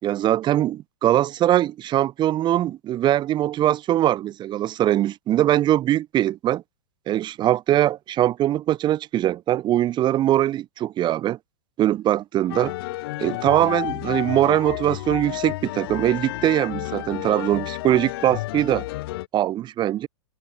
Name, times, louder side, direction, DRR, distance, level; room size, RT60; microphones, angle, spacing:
voice 1, 0.0-6.6 7.1-11.4 11.8-12.7 13.2-18.8 19.3-20.1, right 13 dB, 30° right, 3.4 m, -22 dB
sound 1, 12.5-19.3, left 18 dB, 55° left, 2.5 m, -31 dB
hypercardioid pair, 110°, 15 cm